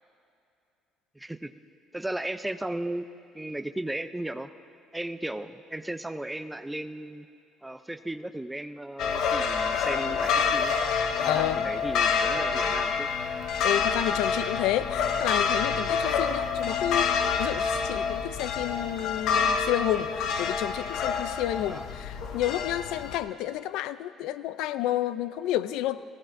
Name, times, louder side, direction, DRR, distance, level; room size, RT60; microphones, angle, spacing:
voice 1, 1.1-1.5 1.9-3.1 3.3-4.5 4.9-7.3 7.6-10.7 11.2-13.1 21.7-21.9, right 1 dB, 5° right, 10 dB, 0.4 m, -35 dB
sound 1, 9.0-23.2, left 6 dB, 65° left, 0.8 m, -27 dB
voice 2, 11.2-11.6 13.6-26.0, left 13 dB, 80° left, 14 dB, 0.4 m, -30 dB
20.0 x 17.0 x 2.6 m, 2.5 s
cardioid pair, 125°, 0 cm